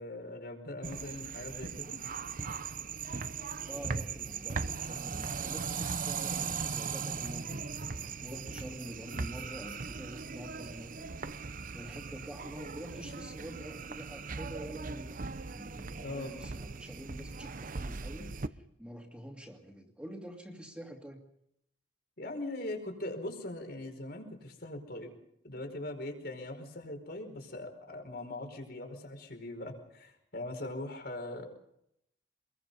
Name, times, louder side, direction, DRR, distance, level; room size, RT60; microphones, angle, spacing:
voice 1, 0.0-2.0 16.0-16.3 22.2-25.1 25.4-31.5, left 1 dB, 60° left, 5 dB, 4.9 m, -41 dB
sound 1, 0.8-18.5, right 5 dB, 50° right, 0.8 m, -39 dB
voice 2, 3.6-11.1 11.7-15.2 15.5-21.3, equal, 5° right, 0 dB, 2.4 m, -47 dB
26.5 x 21.5 x 5.5 m, 0.76 s
head